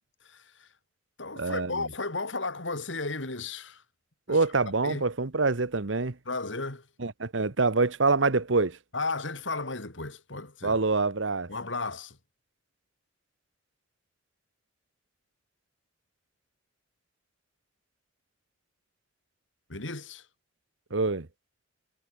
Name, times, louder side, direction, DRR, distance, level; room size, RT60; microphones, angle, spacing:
voice 1, 0.3-0.7 1.2-3.8 4.3-4.4 4.8-5.0 6.3-6.8 8.9-10.8 11.5-12.2 19.7-20.2, left 3 dB, 70° left, 3.7 m, -34 dB
voice 2, 1.4-1.8 4.3-6.1 7.0-8.8 10.6-11.5 20.9-21.3, right 3 dB, 75° right, 1.3 m, -25 dB
head